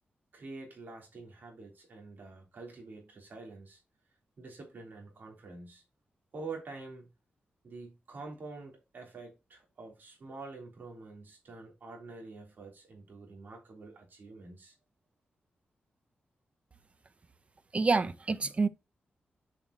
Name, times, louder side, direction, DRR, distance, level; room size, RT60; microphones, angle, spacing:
voice 1, 0.3-3.8 4.4-5.8 6.3-7.1 7.6-14.7, right 3 dB, 60° right, 3.6 m, -47 dB
voice 2, 17.7-18.7, right 4 dB, 35° right, 0.6 m, -27 dB
7.3 x 5.8 x 3.0 m
wide cardioid pair, 90°, 4 cm